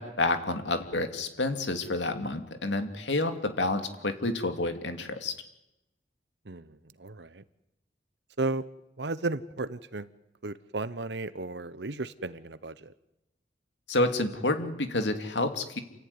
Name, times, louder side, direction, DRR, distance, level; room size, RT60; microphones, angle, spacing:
voice 1, 0.0-5.3 13.9-15.8, left 2 dB, 85° left, 7 dB, 2.5 m, -29 dB
voice 2, 6.5-7.4 8.4-8.6 9.0-10.1 10.4-12.9, right 2 dB, 75° right, 15 dB, 1.1 m, -34 dB
28.5 x 15.0 x 9.8 m, 0.90 s
head